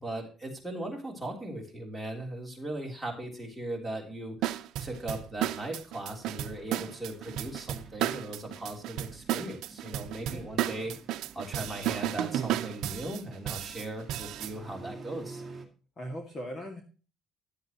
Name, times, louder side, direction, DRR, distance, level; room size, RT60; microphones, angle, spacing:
voice 1, 0.0-4.4 4.8-15.4, right 1 dB, ahead, 3 dB, 3.2 m, -38 dB
sound 1, 4.4-14.5, right 12 dB, 70° right, 0.8 m, -33 dB
sound 2, 6.2-15.7, right 3 dB, 15° right, 2.1 m, -50 dB
voice 2, 16.0-16.8, equal, 25° left, 3 dB, 2.0 m, -40 dB
14.5 x 11.0 x 3.0 m, 0.36 s
cardioid pair, 180°, 0 cm